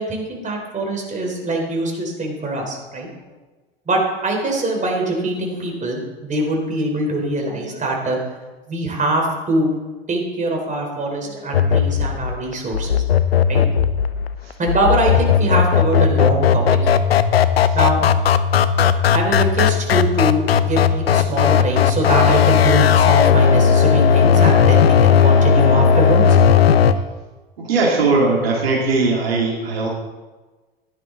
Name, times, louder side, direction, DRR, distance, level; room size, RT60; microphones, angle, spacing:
voice 1, 0.0-3.1 3.9-8.2 8.7-9.7 10.1-13.0 13.5-13.6 14.6-17.1 17.7-18.0 19.1-26.4, right 2 dB, 25° right, 0 dB, 4.0 m, -23 dB
sound 1, 11.5-26.9, left 7 dB, 90° left, 0.6 m, -16 dB
voice 2, 27.6-29.9, right 3 dB, 80° right, -2 dB, 2.5 m, -19 dB
14.5 x 11.0 x 3.9 m, 1.3 s
hypercardioid pair, 75°, 30 cm